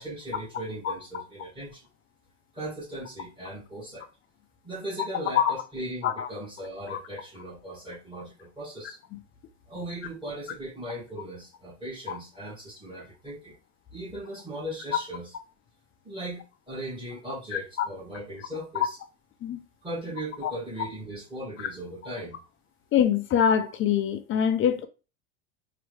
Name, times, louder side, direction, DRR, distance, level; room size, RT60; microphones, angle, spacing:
voice 1, 0.0-1.9 2.5-4.1 4.6-9.0 9.7-13.6 13.9-15.3 16.0-19.0 19.8-22.4, right 1 dB, 15° right, 2.5 m, -38 dB
voice 2, 22.9-24.9, left 8 dB, 35° left, 0.7 m, -24 dB
4.5 x 2.9 x 3.4 m
supercardioid pair, 110°, 35 cm